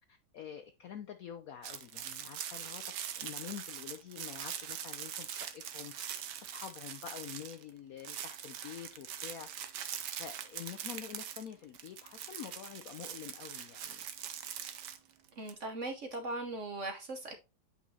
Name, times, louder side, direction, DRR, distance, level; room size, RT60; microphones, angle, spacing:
voice 1, 0.1-2.8 3.2-5.9 6.4-9.5 9.7-14.1, left 9 dB, 70° left, 0.8 m, -47 dB
sound 1, 1.6-7.7 8.0-15.5, right 9 dB, 65° right, 1.3 m, -43 dB
voice 2, 15.4-17.4, right 2 dB, 50° right, 1.0 m, -39 dB
8.5 x 5.4 x 2.7 m
omnidirectional pair, 2.1 m